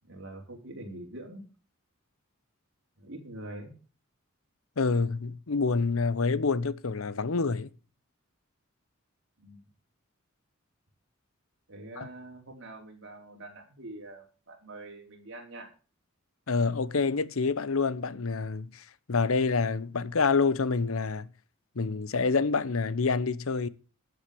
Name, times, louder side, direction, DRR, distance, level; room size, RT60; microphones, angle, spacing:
voice 1, 0.0-1.4 3.0-3.7 9.4-9.7 11.7-15.7, right 1 dB, 60° right, 4.3 m, -44 dB
voice 2, 4.8-7.7 12.0-12.1 16.5-21.3 21.8-23.7, left 4 dB, 75° left, 0.8 m, -27 dB
13.0 x 8.0 x 6.9 m
head